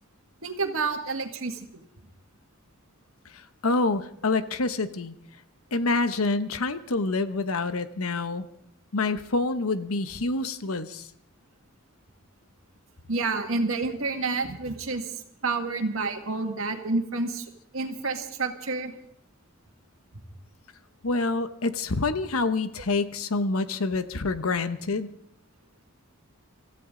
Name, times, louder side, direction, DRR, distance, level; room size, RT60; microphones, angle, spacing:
voice 1, 0.4-1.7 13.1-17.5 17.7-18.9, right 3 dB, 75° right, 5 dB, 2.0 m, -29 dB
voice 2, 3.6-5.1 5.7-8.5 8.9-11.1 21.0-25.1, left 3 dB, 85° left, 11 dB, 1.0 m, -27 dB
25.0 x 14.5 x 3.8 m, 0.70 s
head